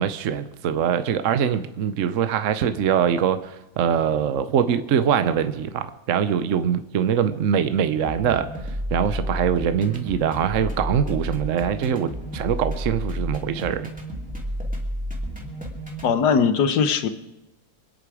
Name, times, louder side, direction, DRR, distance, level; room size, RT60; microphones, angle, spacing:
voice 1, 0.0-8.5 8.9-13.9, right 8 dB, 60° right, 11 dB, 1.0 m, -23 dB
sound 1, 8.0-16.1, equal, 5° right, 2.7 m, -31 dB
voice 2, 16.0-17.1, left 6 dB, 90° left, 10 dB, 1.5 m, -20 dB
27.5 x 10.0 x 4.9 m, 0.97 s
omnidirectional pair, 1.7 m